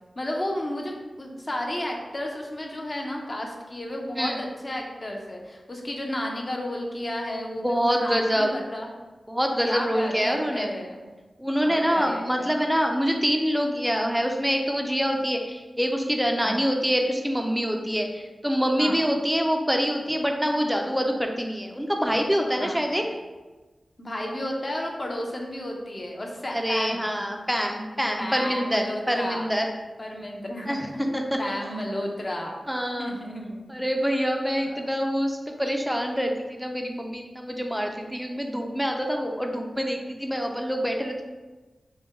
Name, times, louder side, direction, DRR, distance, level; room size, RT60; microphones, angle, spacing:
voice 1, 0.2-8.9 9.6-11.1 11.6-12.5 16.4-16.6 18.8-19.0 22.6-22.8 24.0-27.1 28.2-29.5 30.0-32.6 33.0-33.7 34.7-34.9, left 1 dB, 35° left, 0 dB, 0.7 m, -32 dB
voice 2, 7.6-8.5 9.3-10.7 11.4-23.1 26.5-29.7 30.7-30.9 31.1-31.4 32.7-33.2 33.7-41.2, equal, 5° right, 2 dB, 0.5 m, -25 dB
6.0 x 2.2 x 3.5 m, 1.2 s
wide cardioid pair, 100°, 0 cm